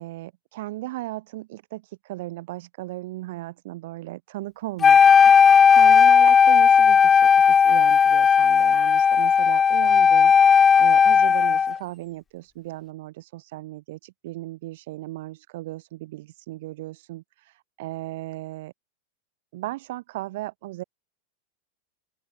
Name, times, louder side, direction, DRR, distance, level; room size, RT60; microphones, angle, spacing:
voice 1, 0.0-18.7 19.5-20.8, right 18 dB, 50° right, 6.9 m, -36 dB
Wind instrument woodwind instrument, 4.8-11.8, left 6 dB, 20° left, 0.9 m, -15 dB
open air
figure-of-eight pair, 90°, 0 cm